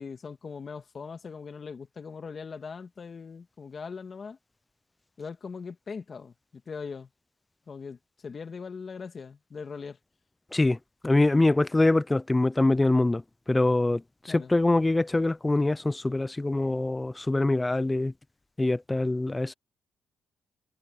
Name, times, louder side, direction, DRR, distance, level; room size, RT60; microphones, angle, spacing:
voice 1, 0.0-4.4 5.2-7.1 7.7-10.0 14.3-14.5, left 5 dB, 40° left, 1.9 m, -40 dB
voice 2, 11.0-13.2 13.5-14.0 14.3-18.1 18.6-19.5, left 2 dB, 15° left, 0.6 m, -24 dB
cardioid pair, 90°, 0 cm